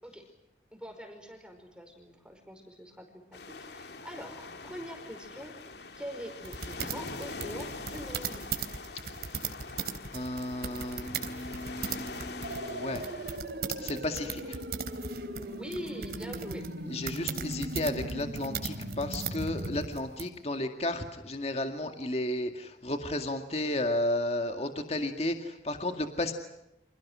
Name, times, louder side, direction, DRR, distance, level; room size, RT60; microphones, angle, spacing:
voice 1, 0.7-5.6 6.0-8.4 14.6-14.7 15.4-16.7, equal, 5° right, 5 dB, 5.1 m, -44 dB
sound 1, 3.3-13.4, left 3 dB, 70° left, 2.4 m, -43 dB
sound 2, 6.4-20.3, right 6 dB, 60° right, 3.4 m, -38 dB
voice 2, 10.1-13.0 13.8-14.6 16.9-26.3, left 1 dB, 35° left, 6 dB, 2.1 m, -33 dB
sound 3, 12.4-19.8, right 1 dB, 75° right, 4.5 m, -39 dB
30.0 x 27.0 x 6.3 m, 0.87 s
head